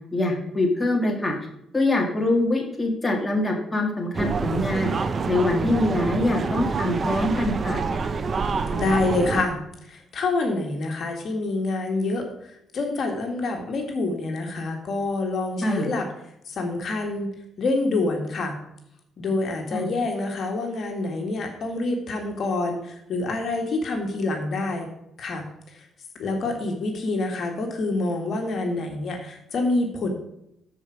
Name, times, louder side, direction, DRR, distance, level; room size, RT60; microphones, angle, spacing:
voice 1, 0.1-1.3 1.7-4.9 5.3-7.8 15.6-15.9 19.7-19.9, left 2 dB, 15° left, 1 dB, 1.7 m, -24 dB
sound 1, 4.1-9.4, right 4 dB, 40° right, 0.7 m, -27 dB
voice 2, 8.7-12.2 12.7-16.1 16.4-18.6 19.2-24.9 25.2-25.9 26.2-30.1, left 2 dB, 55° left, 3 dB, 1.8 m, -27 dB
12.5 x 4.9 x 4.8 m, 0.79 s
cardioid pair, 90°, 0 cm